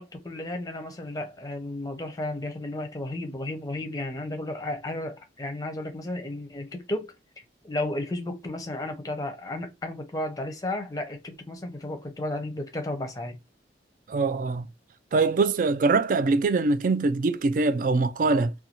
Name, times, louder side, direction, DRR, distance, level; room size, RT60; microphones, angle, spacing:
voice 1, 0.0-7.1 7.6-13.4, left 1 dB, 20° left, 0.6 m, -33 dB
voice 2, 14.1-14.7 15.1-18.5, right 3 dB, 45° right, 0.3 m, -23 dB
2.6 x 2.3 x 2.9 m
head